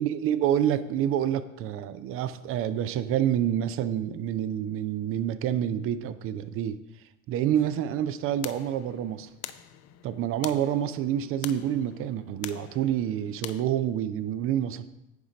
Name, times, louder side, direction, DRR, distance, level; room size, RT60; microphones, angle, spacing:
voice 1, 0.0-6.8 7.3-9.3 10.0-14.9, right 10 dB, 35° right, 13 dB, 0.5 m, -28 dB
sound 1, 7.5-13.6, left 13 dB, 40° left, 0.5 m, -44 dB
9.6 x 5.0 x 5.0 m, 0.92 s
figure-of-eight pair, 65°, 40 cm